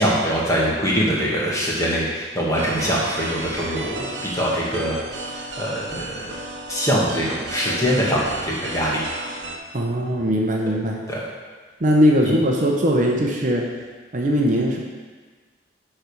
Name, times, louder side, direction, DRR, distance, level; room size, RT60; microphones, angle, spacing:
voice 1, 0.0-5.0 5.6-6.4 6.7-9.1 11.1-11.2 12.2-12.3, equal, 15° left, -5 dB, 1.3 m, -23 dB
sound 1, 2.5-9.6, right 2 dB, 75° right, 0.8 m, -34 dB
voice 2, 9.7-11.0 11.8-13.7 14.1-14.9, equal, 40° right, 0 dB, 0.7 m, -20 dB
9.0 x 3.4 x 5.3 m, 1.4 s
head